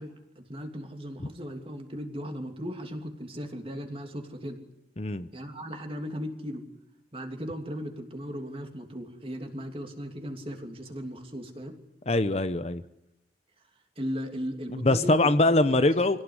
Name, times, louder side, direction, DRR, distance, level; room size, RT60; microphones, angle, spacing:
voice 1, 0.0-4.6 5.3-6.6 7.1-11.8 14.0-15.9, equal, 30° right, 4 dB, 3.0 m, -37 dB
voice 2, 5.0-5.3 12.1-12.8 14.7-16.2, left 2 dB, 35° left, 11 dB, 0.9 m, -23 dB
26.0 x 17.5 x 9.8 m, 0.85 s
head